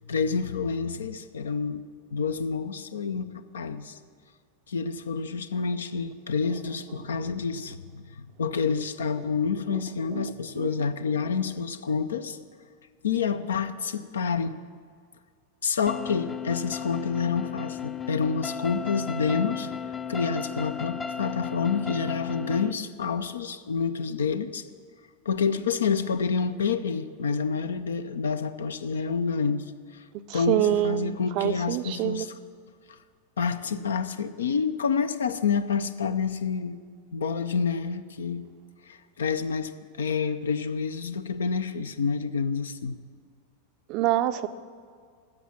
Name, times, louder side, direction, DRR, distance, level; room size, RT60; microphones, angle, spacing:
voice 1, 0.1-1.8 2.1-4.0 4.7-12.4 13.0-14.5 15.6-19.7 20.1-24.6 25.3-29.6 29.9-30.0 30.3-32.4 32.9-33.0 33.4-36.8 37.1-38.5 38.9-39.7 40.0-43.0, left 5 dB, 65° left, 11 dB, 0.6 m, -28 dB
voice 2, 10.0-10.7 30.3-32.3 43.9-44.5, right 13 dB, 40° right, 12 dB, 0.5 m, -27 dB
sound 1, 15.9-22.7, left 7 dB, 15° left, 0.6 m, -35 dB
13.0 x 7.7 x 7.3 m, 2.1 s
figure-of-eight pair, 90°, 0 cm